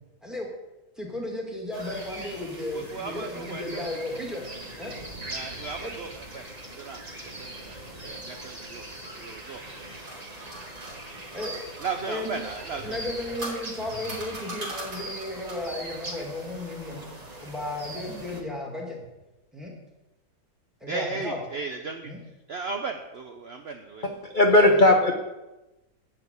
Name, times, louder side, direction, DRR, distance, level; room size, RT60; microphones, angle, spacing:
voice 1, 1.0-4.4 4.8-4.9 5.8-5.9 11.3-11.6 12.1-12.4 12.8-17.1 17.4-19.0 19.5-19.7 20.8-21.4 22.0-22.2 24.5-24.7, left 1 dB, ahead, -1 dB, 2.2 m, -34 dB
sound 1, 1.7-18.4, right 1 dB, 25° right, 1.4 m, -41 dB
voice 2, 2.7-3.8 5.3-6.4 6.7-9.6 11.8-13.0 20.9-22.1 22.5-24.1, right 4 dB, 65° right, 4 dB, 0.6 m, -36 dB
sound 2, 9.6-11.9 12.9-15.7, right 1 dB, 50° right, 3.5 m, -40 dB
voice 3, 24.2-25.1, left 1 dB, 45° left, 3 dB, 0.7 m, -17 dB
11.0 x 5.1 x 8.3 m, 1.0 s
omnidirectional pair, 2.0 m